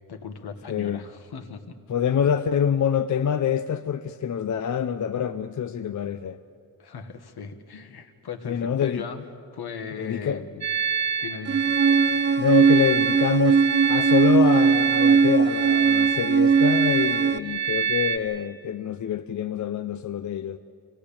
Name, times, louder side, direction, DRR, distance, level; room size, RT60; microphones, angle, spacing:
voice 1, 0.1-1.8 6.8-9.2 9.5-10.7 11.2-11.6, left 6 dB, 75° left, 1.7 m, -37 dB
voice 2, 0.7-1.0 1.9-6.4 8.4-9.0 10.0-10.4 12.4-13.6 13.9-20.6, left 8 dB, 50° left, 0.6 m, -26 dB
sound 1, 10.6-18.2, right 7 dB, 45° right, 1.4 m, -27 dB
sound 2, 11.5-17.4, right 5 dB, 30° right, 0.5 m, -20 dB
25.0 x 18.0 x 8.6 m
wide cardioid pair, 160°, 39 cm